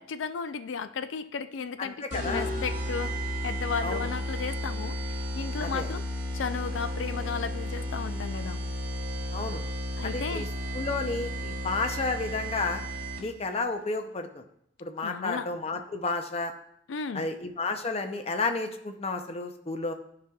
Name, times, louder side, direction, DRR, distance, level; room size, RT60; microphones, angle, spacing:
voice 1, 0.0-3.1 3.4-6.0 6.3-8.6 10.0-10.4 15.0-15.5 16.9-17.3, left 5 dB, 85° left, 12 dB, 0.4 m, -34 dB
voice 2, 1.8-2.5 3.8-4.1 5.6-5.9 9.3-9.6 10.0-10.5 10.7-12.8 13.2-14.4 14.8-16.5 17.1-19.9, left 3 dB, 35° left, 6 dB, 0.6 m, -31 dB
sound 1, 2.1-13.5, equal, 45° right, 1.5 m, -33 dB
12.0 x 5.0 x 2.3 m, 0.72 s
head